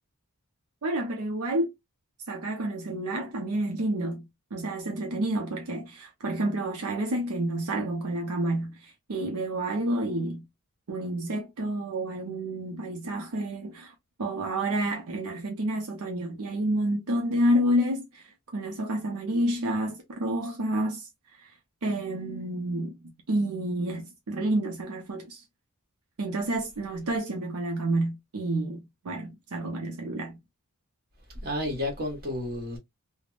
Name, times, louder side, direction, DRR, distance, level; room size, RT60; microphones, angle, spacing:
voice 1, 0.8-1.7 2.3-4.3 4.5-10.5 10.9-21.5 21.8-25.4 26.2-30.4, right 1 dB, 75° right, 0.6 m, -29 dB
voice 2, 31.3-32.8, left 1 dB, 45° right, 1.2 m, -31 dB
3.4 x 2.1 x 2.4 m
head